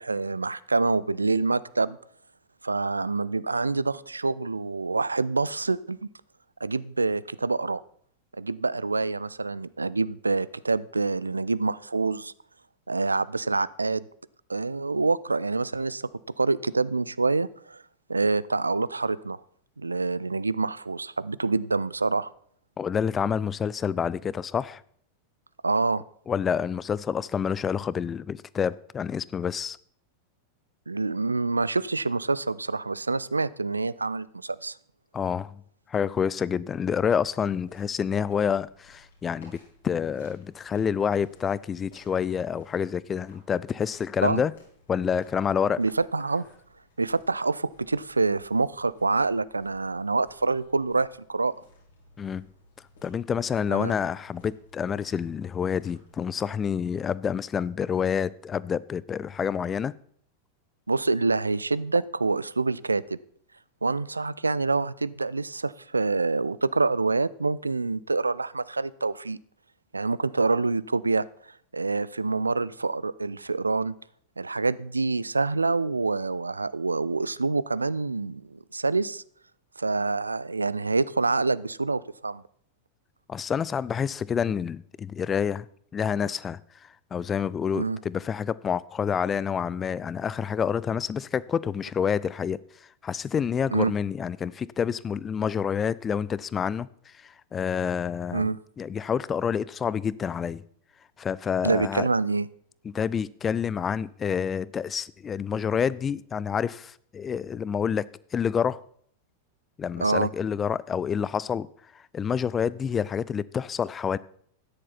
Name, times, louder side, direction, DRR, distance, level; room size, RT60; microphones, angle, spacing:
voice 1, 0.0-2.0 2.6-6.0 6.6-7.8 8.4-12.3 12.9-14.0 14.5-16.1 16.4-17.8 18.1-19.4 19.8-22.3 25.6-26.0 30.9-34.8 44.2-44.4 45.8-46.5 47.0-51.5 53.7-53.9 60.9-63.2 63.8-69.4 69.9-71.3 71.7-73.9 74.4-79.2 79.8-82.4 87.8-88.0 93.7-93.9 98.3-98.6 101.6-102.5 110.0-110.3, right 3 dB, 80° right, 0.4 m, -26 dB
voice 2, 22.8-24.8 26.3-29.8 35.1-35.6 35.9-39.6 39.8-44.5 44.9-45.8 52.2-52.4 53.0-59.9 83.3-85.7 85.9-86.6 87.1-92.6 93.0-98.5 98.8-100.6 101.2-102.1 102.8-108.8 109.8-111.7 112.1-114.2, left 7 dB, 20° left, 0.4 m, -28 dB
kroki-meskie-asfalt-park-lesny, 37.6-56.3, left 2 dB, 65° left, 4.2 m, -58 dB
13.0 x 10.0 x 4.1 m
figure-of-eight pair, 90°, 0 cm